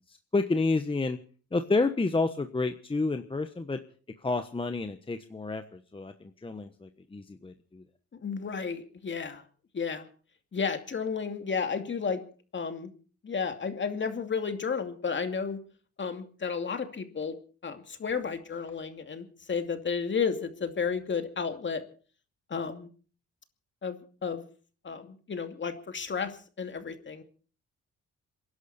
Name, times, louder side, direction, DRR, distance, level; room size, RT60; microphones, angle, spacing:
voice 1, 0.1-1.2 1.5-3.8 4.2-7.8, left 3 dB, 15° left, 7 dB, 1.2 m, -30 dB
voice 2, 8.1-9.4 9.7-10.1 10.5-12.2 12.5-12.9 13.2-15.6 16.0-17.4 17.6-21.8 22.5-22.9 23.8-24.4 24.8-27.2, left 5 dB, 40° left, 6 dB, 2.6 m, -32 dB
27.5 x 11.5 x 4.3 m, 0.40 s
cardioid pair, 90°, 30 cm